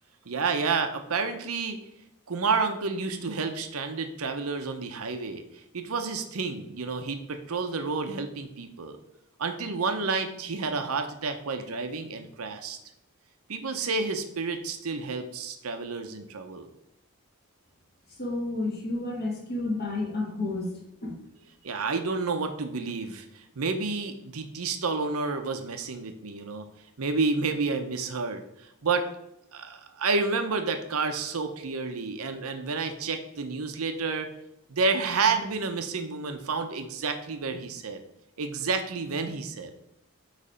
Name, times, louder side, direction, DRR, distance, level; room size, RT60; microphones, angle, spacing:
voice 1, 0.3-1.8 2.3-9.0 9.4-12.8 13.5-16.7 21.6-26.6 27.0-28.4 28.8-29.1 29.5-34.3 34.7-38.0 38.4-39.7, right 4 dB, 75° right, 7 dB, 0.8 m, -30 dB
voice 2, 18.2-20.7 21.0-21.2, left 2 dB, 50° left, -2 dB, 2.2 m, -30 dB
8.4 x 3.2 x 5.1 m, 0.83 s
head